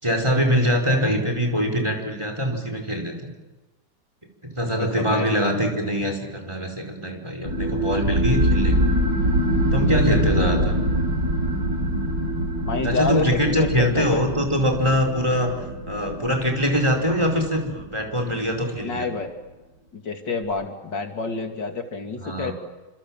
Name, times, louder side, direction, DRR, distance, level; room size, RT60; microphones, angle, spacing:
voice 1, 0.0-3.3 4.5-8.9 9.7-10.7 12.8-15.5 15.9-19.1 22.2-22.5, equal, 15° right, 3 dB, 4.7 m, -23 dB
voice 2, 4.8-5.3 12.6-14.2 18.8-19.3 19.9-22.5, left 4 dB, 80° left, 4 dB, 3.3 m, -28 dB
sound 1, 7.5-18.6, right 1 dB, 80° right, 4.8 m, -24 dB
28.5 x 26.0 x 7.5 m, 1.1 s
omnidirectional pair, 1.9 m